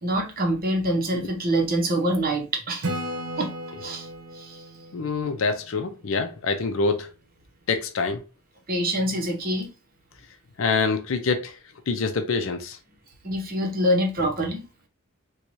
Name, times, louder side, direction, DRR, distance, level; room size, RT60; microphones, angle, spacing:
voice 1, 0.0-2.9 3.4-3.5 3.8-4.1 4.3-4.6 8.7-9.7 13.2-14.6, right 1 dB, 40° right, 0.8 m, -25 dB
Acoustic guitar / Strum, 2.8-6.4, right 1 dB, 90° right, 0.8 m, -35 dB
voice 2, 4.9-7.1 7.7-8.2 10.6-11.6 11.9-12.8, left 4 dB, 65° left, 0.5 m, -26 dB
4.5 x 2.3 x 2.6 m
head